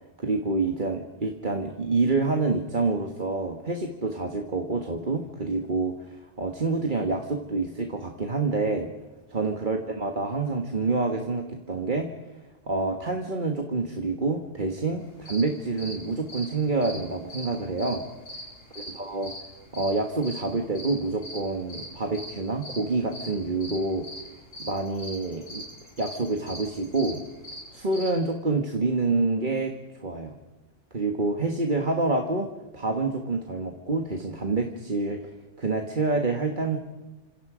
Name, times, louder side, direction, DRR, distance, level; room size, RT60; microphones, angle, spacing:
voice 1, 0.2-8.9 9.3-12.1 12.7-18.0 18.7-19.3 19.7-24.0 24.6-25.7 26.0-27.2 27.7-29.7 30.0-30.3 30.9-32.5 32.7-35.2 35.6-36.8, right 3 dB, 40° right, 4 dB, 1.7 m, -27 dB
sound 1, 15.0-28.1, equal, 75° left, 8.5 m, -41 dB
28.5 x 26.5 x 5.1 m, 1.2 s
omnidirectional pair, 1.3 m